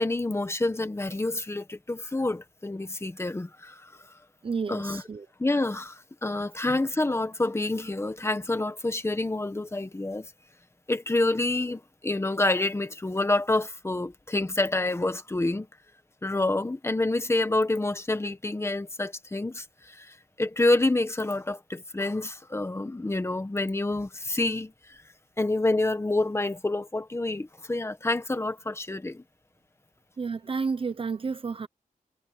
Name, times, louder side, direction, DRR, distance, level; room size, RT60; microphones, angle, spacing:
voice 1, 0.0-3.8 4.7-5.0 5.4-10.3 10.9-15.7 16.2-20.1 20.4-24.7 25.4-29.2, left 2 dB, 20° left, 1.5 m, -28 dB
voice 2, 4.4-5.3 30.2-31.7, right 5 dB, 40° right, 0.7 m, -31 dB
wide cardioid pair, 150°, 14 cm